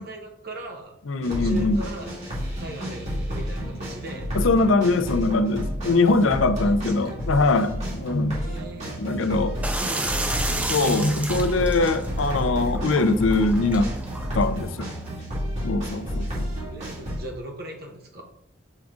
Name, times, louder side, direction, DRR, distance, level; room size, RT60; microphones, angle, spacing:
voice 1, 0.0-1.0 1.2-2.1 2.6-4.3 6.6-7.1 8.3-8.9 9.7-10.6 16.7-18.2, right 1 dB, 55° right, 2 dB, 1.2 m, -39 dB
voice 2, 1.1-1.8 4.3-8.4 9.0-9.6 10.5-13.9 14.3-14.9 15.6-16.5, left 3 dB, 90° left, 10 dB, 0.5 m, -22 dB
sound 1, 1.2-17.2, equal, 35° right, 2.2 m, -30 dB
sound 2, 9.6-15.1, right 1 dB, 10° right, 0.5 m, -32 dB
7.4 x 3.6 x 3.7 m, 0.73 s
head